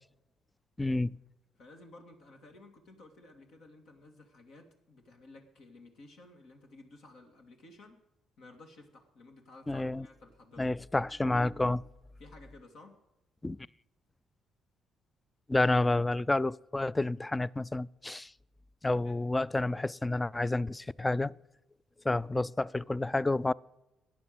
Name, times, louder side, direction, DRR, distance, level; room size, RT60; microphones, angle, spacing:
voice 1, 0.8-1.1 9.7-10.1 10.6-11.8 13.4-13.6 15.5-18.3 18.8-21.3 22.0-23.5, left 2 dB, 15° left, 0.4 m, -29 dB
voice 2, 1.6-8.0 8.4-10.7 12.2-13.0 18.9-19.2, left 2 dB, 70° left, 2.4 m, -55 dB
11.5 x 9.8 x 7.8 m
supercardioid pair, 60°, 0 cm